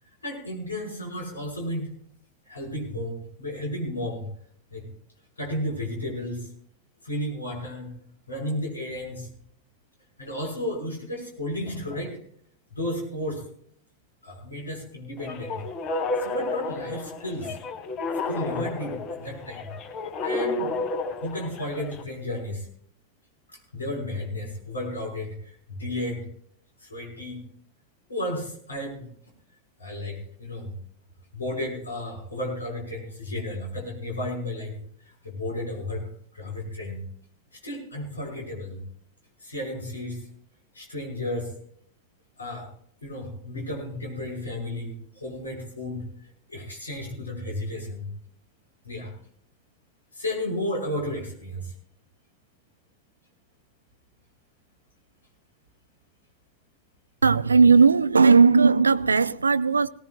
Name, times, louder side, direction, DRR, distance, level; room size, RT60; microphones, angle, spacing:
voice 1, 0.2-1.9 2.5-4.2 4.7-4.9 5.4-6.5 7.0-7.9 8.3-9.3 10.2-12.2 12.7-13.4 14.2-15.6 16.2-17.6 18.3-19.7 20.2-20.7 21.2-22.7 23.5-26.2 26.8-27.4 28.1-29.1 29.8-30.7 31.3-34.8 35.0-36.1 36.3-37.0 37.5-38.8 39.4-40.3 40.7-41.5 42.4-42.7 43.0-48.1 48.8-49.1 50.1-51.7, left 1 dB, 75° left, 6.1 m, -33 dB
sound 1, 15.2-22.0, left 3 dB, 35° left, 1.9 m, -31 dB
voice 2, 57.2-59.9, right 5 dB, 75° right, 0.4 m, -17 dB
19.5 x 18.5 x 2.5 m
figure-of-eight pair, 90°, 0 cm